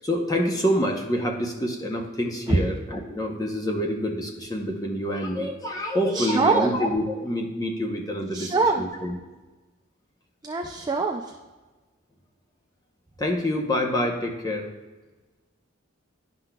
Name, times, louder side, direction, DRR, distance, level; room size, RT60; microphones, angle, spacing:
voice 1, 0.0-9.2 13.2-14.7, equal, 20° left, 1 dB, 0.7 m, -27 dB
voice 2, 6.1-6.7 8.3-8.8 10.4-11.2, right 3 dB, 20° right, 2 dB, 0.3 m, -23 dB
10.5 x 5.7 x 2.2 m, 1.3 s
head